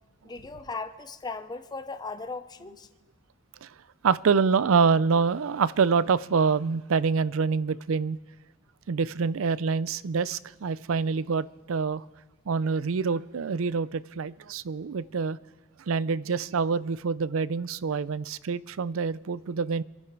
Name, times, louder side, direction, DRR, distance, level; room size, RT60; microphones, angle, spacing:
voice 1, 0.2-2.9, left 3 dB, 20° left, 0.6 m, -37 dB
voice 2, 4.0-8.2 8.9-12.0 12.5-15.4 15.9-19.8, right 5 dB, 75° right, 0.5 m, -26 dB
25.5 x 11.0 x 4.7 m
head